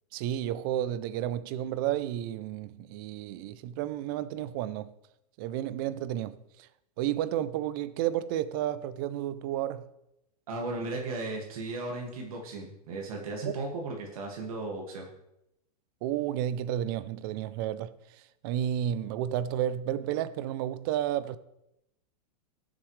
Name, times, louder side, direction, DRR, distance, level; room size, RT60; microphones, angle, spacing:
voice 1, 0.1-4.9 5.4-6.4 7.0-9.9 13.4-13.5 16.0-17.9 18.4-21.4, right 11 dB, 35° right, 0.5 m, -31 dB
voice 2, 10.5-15.1, right 2 dB, 60° right, 2.1 m, -36 dB
17.5 x 7.3 x 3.2 m
supercardioid pair, 160°, 21 cm